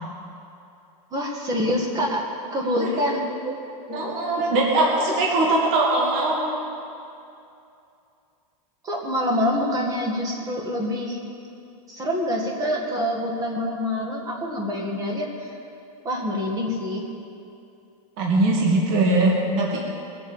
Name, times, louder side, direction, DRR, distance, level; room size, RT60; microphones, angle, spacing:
voice 1, 1.1-2.3 2.5-3.3 3.9-4.2 8.8-11.2 11.9-15.6 16.0-17.1, left 1 dB, 20° right, 0 dB, 1.9 m, -26 dB
voice 2, 3.9-6.6 18.2-19.8, right 2 dB, 45° right, -3 dB, 2.4 m, -21 dB
20.5 x 7.6 x 7.3 m, 2.7 s
supercardioid pair, 160°, 20 cm